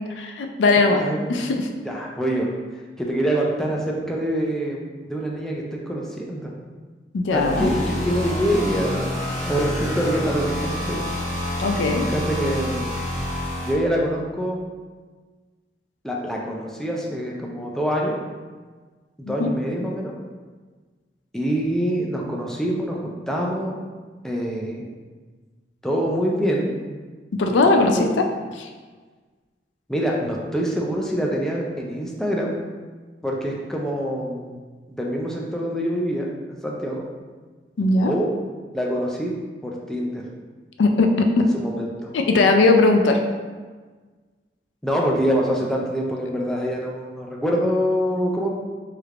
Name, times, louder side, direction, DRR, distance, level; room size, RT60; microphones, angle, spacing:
voice 1, 0.1-1.0 1.3-1.7 7.1-7.7 11.6-12.1 19.2-19.5 27.3-28.3 28.5-28.7 37.8-38.1 40.8-41.5 42.1-43.2, left 3 dB, 85° left, 4 dB, 0.4 m, -19 dB
voice 2, 0.8-1.2 1.8-2.5 3.0-4.8 5.1-6.5 7.3-7.8 8.1-9.1 9.4-11.1 12.1-12.9 13.6-14.6 16.0-18.2 19.2-20.1 21.3-23.8 24.2-24.9 25.8-26.7 27.5-28.1 29.9-32.5 33.2-34.6 34.9-37.0 38.0-38.3 38.7-39.3 39.6-40.3 41.5-42.1 44.8-48.5, equal, 5° left, -2 dB, 0.4 m, -25 dB
sound 1, 7.3-13.7, left 1 dB, 45° left, 0.9 m, -28 dB
3.3 x 3.2 x 2.4 m, 1.4 s
head